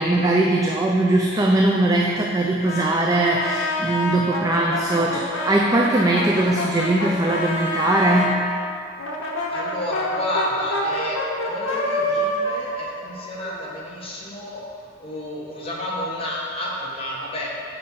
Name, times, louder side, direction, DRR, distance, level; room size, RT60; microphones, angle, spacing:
voice 1, 0.0-8.4, right 2 dB, 15° right, -1 dB, 0.3 m, -20 dB
Brass instrument, 2.6-8.4 9.0-13.8, left 1 dB, 75° left, 0.9 m, -27 dB
voice 2, 9.5-11.2 11.5-17.5, left 1 dB, 30° left, -5 dB, 1.2 m, -30 dB
6.6 x 4.3 x 5.5 m, 2.4 s
head